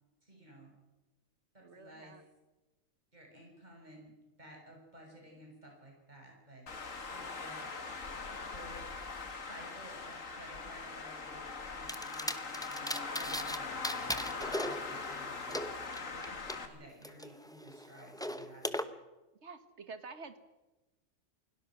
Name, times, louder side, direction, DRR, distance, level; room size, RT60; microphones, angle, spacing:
voice 1, 0.2-0.7 1.5-2.2 3.1-6.7 7.1-8.1 8.5-8.8 9.3-13.7 14.1-18.9, right 1 dB, 35° right, 0 dB, 6.8 m, -54 dB
voice 2, 1.6-2.2 6.7-6.8 19.4-20.4, right 4 dB, 60° right, 10 dB, 1.8 m, -49 dB
Traffic noise roadway noise, 6.7-16.7, left 4 dB, 75° left, 2.3 m, -41 dB
sound 1, 11.9-13.6 13.8-16.6 17.0-18.8, equal, 5° left, 0.8 m, -39 dB
28.0 x 17.5 x 6.2 m, 1.1 s
omnidirectional pair, 1.4 m